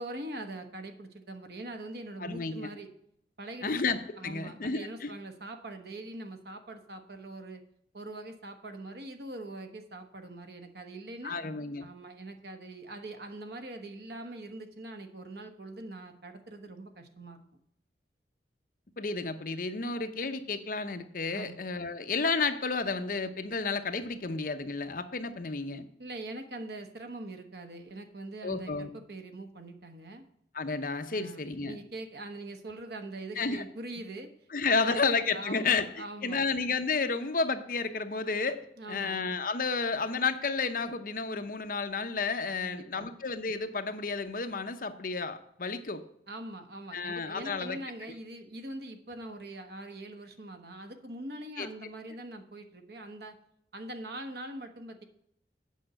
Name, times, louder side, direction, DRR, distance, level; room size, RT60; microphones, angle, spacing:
voice 1, 0.0-2.9 3.4-3.7 4.2-7.6 7.9-11.4 11.8-17.4 21.3-21.5 26.0-30.2 31.1-34.3 34.7-36.4 38.8-39.2 42.6-43.1 46.3-53.4 53.7-55.0, right 2 dB, 65° right, 6 dB, 1.2 m, -43 dB
voice 2, 2.2-2.7 3.6-4.0 4.2-5.1 11.2-11.8 19.0-25.9 28.4-28.9 30.5-31.8 33.4-33.6 34.5-35.9 36.2-38.6 38.9-46.0 46.9-47.8 51.6-51.7, left 4 dB, 50° left, 8 dB, 0.7 m, -31 dB
8.4 x 5.5 x 7.6 m, 0.73 s
head